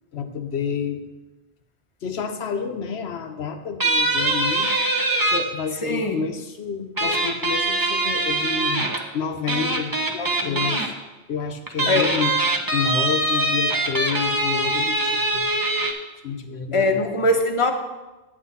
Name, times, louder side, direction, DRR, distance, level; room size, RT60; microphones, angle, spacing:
voice 1, 0.1-1.0 2.0-4.7 5.3-8.9 9.1-10.9 11.3-12.4 12.7-15.4 16.2-17.1, left 6 dB, 65° left, 6 dB, 1.1 m, -29 dB
sound 1, 3.8-5.4 7.0-9.0 9.5-10.9 11.7-15.9, right 2 dB, 20° right, 0.8 m, -23 dB
voice 2, 5.8-6.2 10.1-10.7 11.9-12.2 16.7-17.7, left 1 dB, 30° left, 5 dB, 0.9 m, -22 dB
9.5 x 8.8 x 4.1 m, 1.1 s
omnidirectional pair, 1.2 m